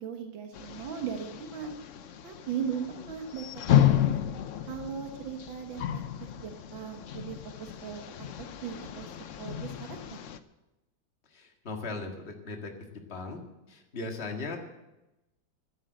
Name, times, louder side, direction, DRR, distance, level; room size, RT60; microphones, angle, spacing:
voice 1, 0.0-1.7 2.2-4.2 4.7-8.3 8.6-9.1 9.4-10.2, right 7 dB, 75° right, 4 dB, 2.0 m, -38 dB
sound 1, 0.5-10.4, left 11 dB, 70° left, 0.7 m, -31 dB
voice 2, 11.3-13.4 13.7-14.6, left 3 dB, 35° left, 2 dB, 1.9 m, -38 dB
12.5 x 11.0 x 7.7 m, 0.96 s
omnidirectional pair, 2.1 m